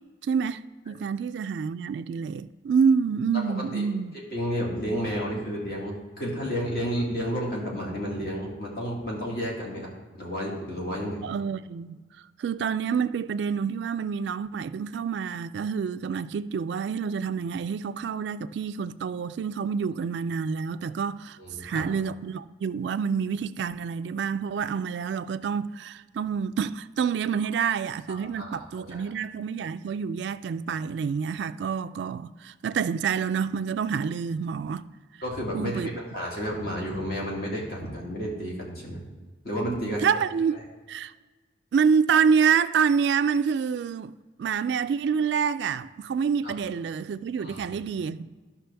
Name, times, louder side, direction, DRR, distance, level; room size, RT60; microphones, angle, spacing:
voice 1, 0.2-4.1 11.2-12.0 12.4-34.9 35.5-35.9 39.7-40.6 40.9-41.1 41.7-44.1 44.4-48.4, right 6 dB, 75° right, 0.3 m, -27 dB
voice 2, 3.5-3.9 4.3-11.2 21.4-21.9 28.1-29.1 35.2-39.1 39.4-40.0 46.4-46.5 47.4-47.7, equal, 55° left, 2.2 m, -31 dB
13.5 x 5.8 x 3.4 m
head